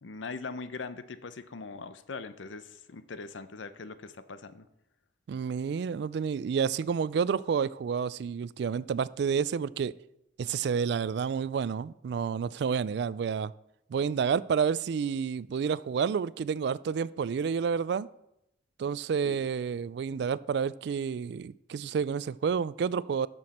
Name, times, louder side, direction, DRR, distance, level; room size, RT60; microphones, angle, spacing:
voice 1, 0.0-4.7 19.2-19.4, left 4 dB, 85° left, 13 dB, 0.6 m, -41 dB
voice 2, 5.3-9.9 10.4-13.5 13.9-18.1 18.8-23.3, right 6 dB, 60° right, 19 dB, 0.3 m, -29 dB
13.0 x 6.2 x 4.3 m, 0.83 s
head